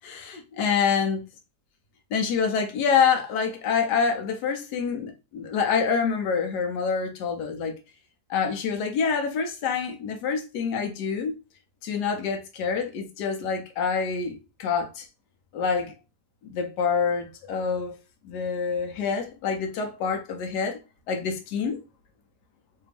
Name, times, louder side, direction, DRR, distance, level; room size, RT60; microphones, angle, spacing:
voice 1, 0.0-1.3 2.1-7.8 8.3-11.3 11.8-15.1 15.5-16.0 16.4-18.0 18.2-20.8 21.1-21.8, left 6 dB, 75° left, 1.3 m, -26 dB
3.3 x 2.6 x 3.3 m
omnidirectional pair, 1.8 m